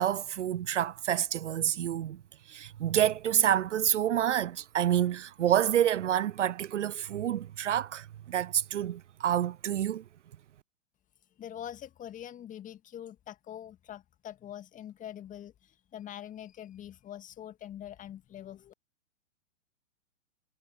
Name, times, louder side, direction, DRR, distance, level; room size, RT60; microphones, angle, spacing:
voice 1, 0.0-2.2 2.5-10.0, right 10 dB, 70° right, 0.5 m, -28 dB
voice 2, 11.4-18.7, left 10 dB, 20° left, 2.0 m, -44 dB
figure-of-eight pair, 105°, 37 cm